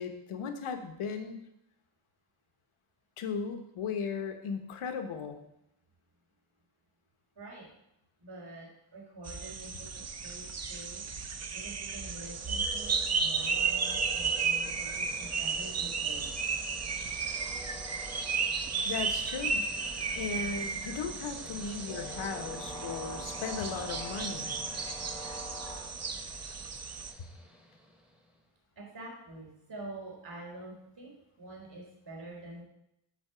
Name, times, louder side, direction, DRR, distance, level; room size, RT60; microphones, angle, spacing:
voice 1, 0.0-1.4 3.2-5.4 18.8-19.7 20.1-24.5, left 5 dB, 85° left, 6 dB, 1.0 m, -36 dB
voice 2, 7.4-7.7 8.2-11.0 11.5-16.3 28.8-31.1 31.4-32.6, right 2 dB, 55° right, -2 dB, 3.9 m, -46 dB
sound 1, 9.2-27.1, right 5 dB, 35° right, 0.5 m, -34 dB
Train, 11.5-28.3, left 1 dB, ahead, 0.8 m, -47 dB
8.7 x 4.1 x 6.7 m, 0.80 s
wide cardioid pair, 180°, 49 cm